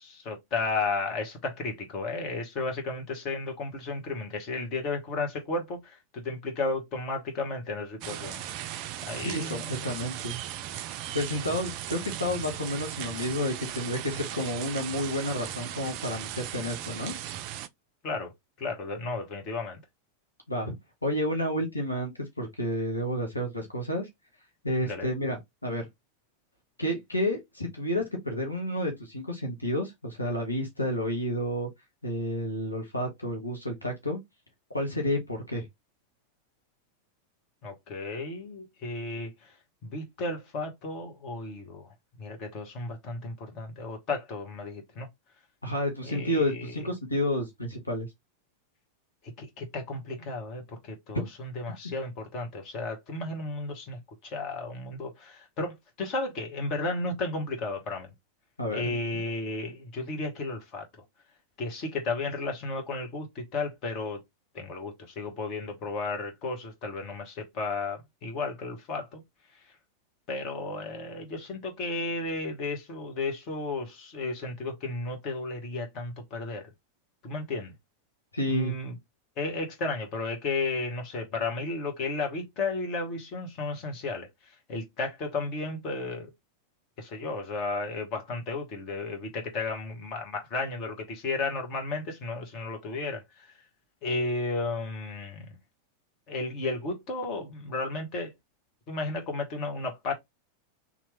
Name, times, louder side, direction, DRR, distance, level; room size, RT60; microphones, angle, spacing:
voice 1, 0.0-8.4 9.0-9.9 11.3-11.4 18.0-18.3 18.6-19.8 24.9-25.1 37.6-39.3 39.8-41.9 42.2-45.1 46.0-46.7 49.4-58.1 58.7-60.9 61.6-64.2 64.5-69.2 70.3-76.7 77.2-77.7 78.5-78.9 79.4-84.3 84.7-86.3 87.0-93.5 94.0-95.5 96.3-98.3 98.9-100.1, left 3 dB, 40° left, 1.1 m, -33 dB
sound 1, 8.0-17.7, right 12 dB, 45° right, 0.3 m, -37 dB
voice 2, 9.2-10.4 11.1-17.1 20.5-20.7 21.0-24.1 24.6-25.9 26.8-31.7 32.0-34.2 34.7-35.7 45.6-48.1 58.6-59.2 78.3-78.7, left 1 dB, 85° left, 1.0 m, -30 dB
3.0 x 2.4 x 3.2 m
figure-of-eight pair, 90°, 0 cm